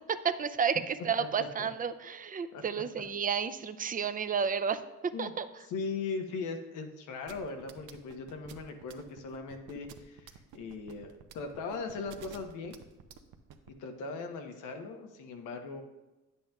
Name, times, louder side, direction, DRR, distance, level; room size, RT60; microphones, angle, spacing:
voice 1, 0.0-5.5, right 6 dB, 30° right, 12 dB, 0.5 m, -32 dB
voice 2, 1.2-1.7 2.5-2.6 5.1-5.3 5.6-12.8 13.7-15.8, left 4 dB, 85° left, 5 dB, 1.0 m, -39 dB
sound 1, 7.3-13.7, right 9 dB, 85° right, 0.7 m, -50 dB
10.0 x 8.3 x 2.3 m, 1.0 s
cardioid pair, 90°, 30 cm